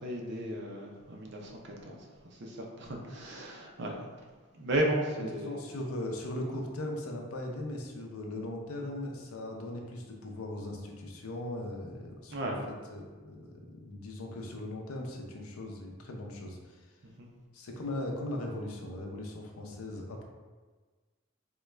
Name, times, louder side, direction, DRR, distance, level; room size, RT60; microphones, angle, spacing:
voice 1, 0.0-2.0 2.2-4.0 4.6-5.5 12.3-12.6 17.2-17.3, right 1 dB, 50° right, 0 dB, 0.5 m, -34 dB
voice 2, 5.2-16.9 17.5-20.2, left 1 dB, 80° left, 1 dB, 0.5 m, -39 dB
3.7 x 2.2 x 3.2 m, 1.4 s
head